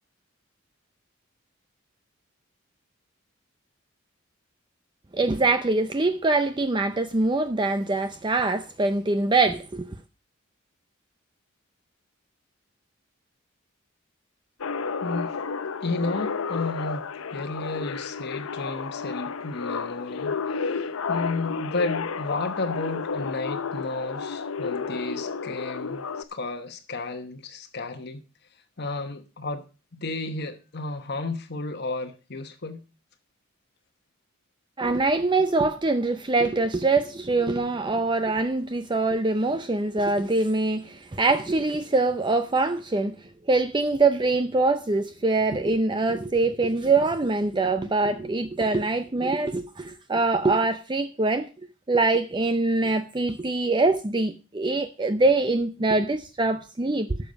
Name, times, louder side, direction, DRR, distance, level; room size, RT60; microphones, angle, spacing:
voice 1, 5.1-9.9 34.8-43.1 43.5-51.5 51.9-57.2, right 3 dB, 20° right, 0.6 m, -24 dB
sound 1, 14.6-26.2, left 5 dB, 85° left, 0.7 m, -31 dB
voice 2, 15.0-15.4 15.8-28.2 28.8-29.6 29.9-32.8, left 3 dB, 50° left, 1.1 m, -32 dB
12.0 x 7.1 x 5.2 m
head